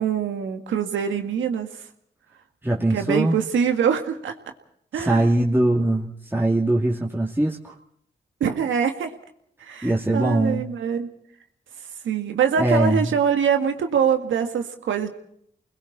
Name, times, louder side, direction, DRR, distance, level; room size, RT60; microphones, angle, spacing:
voice 1, 0.0-1.7 2.9-4.3 4.9-5.3 8.4-9.1 9.6-11.1 12.0-15.1, right 7 dB, 85° right, 6 dB, 1.9 m, -24 dB
voice 2, 2.6-3.4 4.9-7.7 9.8-10.6 12.6-13.1, right 1 dB, 10° right, -3 dB, 2.7 m, -21 dB
29.5 x 21.0 x 4.3 m, 0.68 s
supercardioid pair, 45°, 19 cm